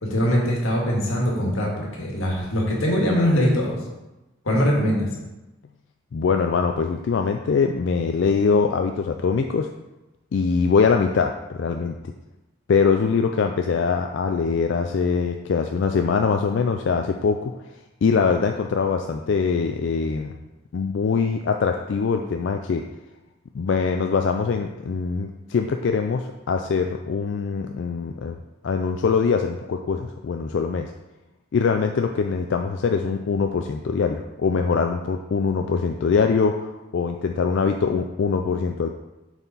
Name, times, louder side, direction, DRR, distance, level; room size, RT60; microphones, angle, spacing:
voice 1, 0.0-3.8 4.5-5.1, equal, 90° left, -2 dB, 1.8 m, -22 dB
voice 2, 6.1-9.7 10.3-12.1 12.7-17.5 18.0-20.4 20.7-22.8 23.5-28.4 28.6-30.9 31.5-38.9, left 5 dB, 60° left, 5 dB, 0.3 m, -23 dB
7.0 x 4.3 x 4.0 m, 1.0 s
head